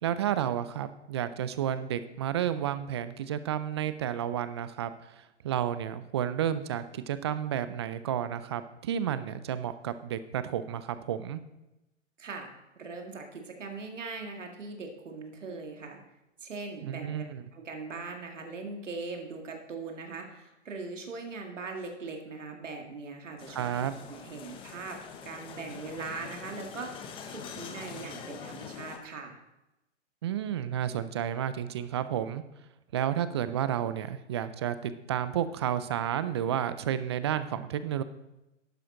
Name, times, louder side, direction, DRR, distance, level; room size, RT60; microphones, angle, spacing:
voice 1, 0.0-11.4 16.8-17.4 23.5-24.0 30.2-32.4 32.9-38.0, right 10 dB, 25° right, 13 dB, 0.4 m, -31 dB
voice 2, 12.2-12.5 12.8-16.0 16.4-17.2 17.5-23.8 24.1-29.4, right 3 dB, 75° right, 3 dB, 2.1 m, -40 dB
sound 1, 23.4-29.0, left 6 dB, 15° left, 0.7 m, -44 dB
12.0 x 9.3 x 3.8 m, 0.93 s
hypercardioid pair, 125°, 37 cm